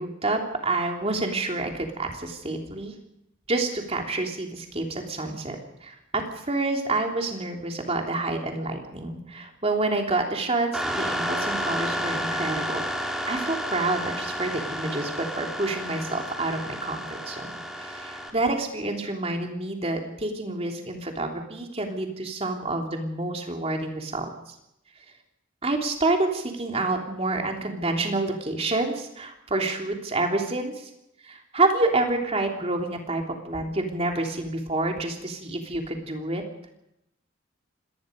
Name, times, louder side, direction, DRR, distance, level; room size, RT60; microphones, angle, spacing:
voice 1, 0.0-2.9 3.5-12.8 13.2-17.5 17.8-24.5 25.6-30.9 31.2-36.4, right 2 dB, 30° right, 2 dB, 3.3 m, -28 dB
sound 1, 10.7-18.3, equal, ahead, 3.1 m, -31 dB
25.5 x 19.0 x 5.3 m, 0.84 s
head